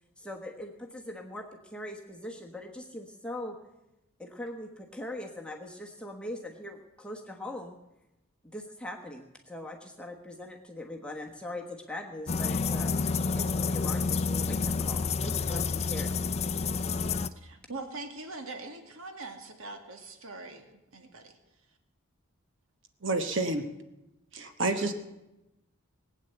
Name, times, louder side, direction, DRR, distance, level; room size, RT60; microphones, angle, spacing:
voice 1, 0.2-3.6 4.2-7.7 8.4-12.9 13.3-16.2, left 1 dB, 5° left, 0 dB, 1.2 m, -41 dB
sound 1, 12.3-17.3, left 4 dB, 30° left, 0.5 m, -29 dB
voice 2, 17.4-20.7 20.9-21.4 24.6-24.8, right 3 dB, 75° right, 5 dB, 2.1 m, -42 dB
voice 3, 23.0-23.6 24.3-24.9, right 2 dB, 60° right, 7 dB, 1.2 m, -29 dB
19.5 x 8.6 x 8.0 m, 0.95 s
head